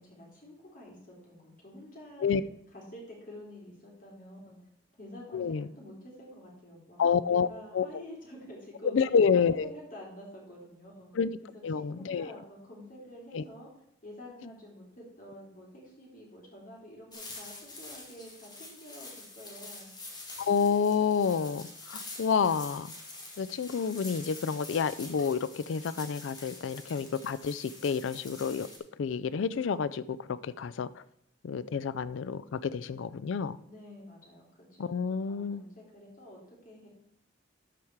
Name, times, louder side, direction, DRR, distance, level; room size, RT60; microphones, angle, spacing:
voice 1, 0.0-2.3 2.7-4.6 5.0-11.1 11.5-13.7 14.0-19.9 33.7-37.0, left 1 dB, 45° left, -2 dB, 3.4 m, -49 dB
voice 2, 5.3-5.7 7.0-7.5 7.7-7.9 8.9-9.7 11.2-11.3 11.6-12.4 13.3-13.4 20.4-22.9 23.4-28.7 29.0-30.0 30.3-31.0 31.4-33.6 34.8-35.6, left 6 dB, 80° left, 16 dB, 0.4 m, -29 dB
sound 1, 17.1-28.8, left 2 dB, 20° left, 1.9 m, -46 dB
12.5 x 4.9 x 4.6 m, 0.74 s
head